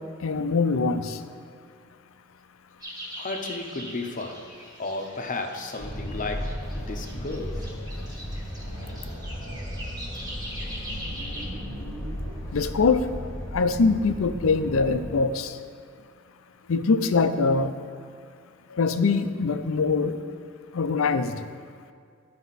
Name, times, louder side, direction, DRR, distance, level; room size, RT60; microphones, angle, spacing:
voice 1, 0.2-1.2 7.9-8.1 12.5-13.1 13.5-15.6 16.7-17.7 18.7-20.2 20.7-21.4, left 4 dB, 85° left, 10 dB, 0.5 m, -23 dB
sound 1, 2.8-11.5, equal, 20° right, 1.6 m, -42 dB
voice 2, 3.2-4.5 4.8-7.7, left 3 dB, 40° left, 5 dB, 0.7 m, -33 dB
sound 2, 5.8-15.2, equal, 15° left, 1.3 m, -35 dB
sound 3, 6.2-7.7 8.0-8.1 8.4-9.9 10.5-13.7, equal, 75° right, 1.7 m, -43 dB
13.0 x 5.1 x 4.1 m, 2.2 s
head